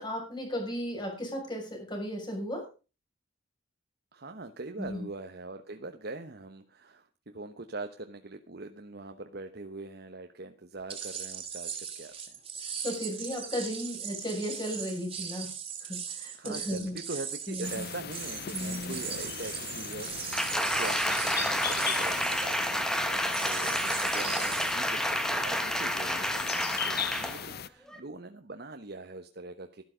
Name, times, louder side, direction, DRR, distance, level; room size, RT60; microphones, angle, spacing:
voice 1, 0.0-2.6 4.8-5.1 12.6-15.5 15.8-17.0 17.5-17.9 18.5-19.0, equal, 25° left, 2 dB, 6.2 m, -35 dB
voice 2, 4.1-12.4 16.3-29.8, right 2 dB, 55° right, 6 dB, 1.1 m, -42 dB
sound 1, 10.9-24.9, right 7 dB, 30° right, 2.8 m, -39 dB
sound 2, 17.6-27.7, left 8 dB, 55° left, 0.7 m, -39 dB
Applause, 20.3-27.5 27.9-28.0, equal, 5° left, 1.5 m, -30 dB
13.0 x 12.5 x 5.1 m, 0.34 s
head